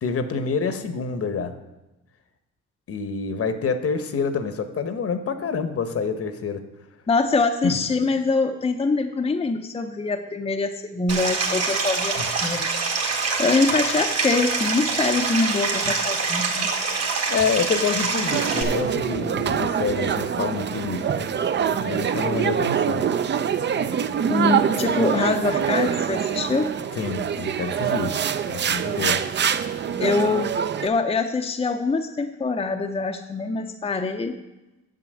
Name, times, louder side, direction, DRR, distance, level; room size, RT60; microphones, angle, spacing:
voice 1, 0.0-1.5 2.9-6.6 7.6-7.8 12.1-12.3 13.7-13.8 17.3-21.3 21.7-23.1 27.0-28.1 28.5-29.2, left 5 dB, 50° left, 9 dB, 1.0 m, -27 dB
voice 2, 7.1-12.7 13.4-16.7 24.2-26.8 28.9-29.2 30.0-34.4, left 3 dB, 20° left, 4 dB, 0.6 m, -24 dB
Stream, 11.1-18.6, right 4 dB, 55° right, 1.8 m, -25 dB
sound 1, 18.3-30.9, right 8 dB, 35° right, 0.5 m, -24 dB
7.8 x 7.4 x 6.3 m, 1.0 s
cardioid pair, 90°, 30 cm